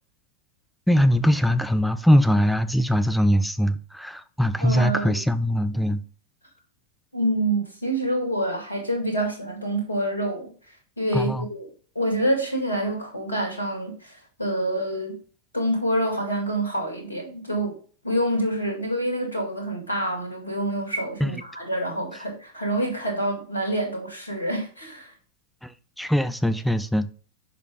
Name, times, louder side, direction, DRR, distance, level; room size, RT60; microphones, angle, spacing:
voice 1, 0.9-6.0 11.1-11.4 21.2-21.3 25.6-25.7 26.0-27.1, equal, ahead, 0.5 m, -21 dB
voice 2, 4.6-5.2 7.1-10.5 11.0-11.7 12.0-15.2 15.5-17.8 18.0-25.1, right 1 dB, 80° left, 2.1 m, -27 dB
6.4 x 5.2 x 3.6 m
figure-of-eight pair, 90°, 0 cm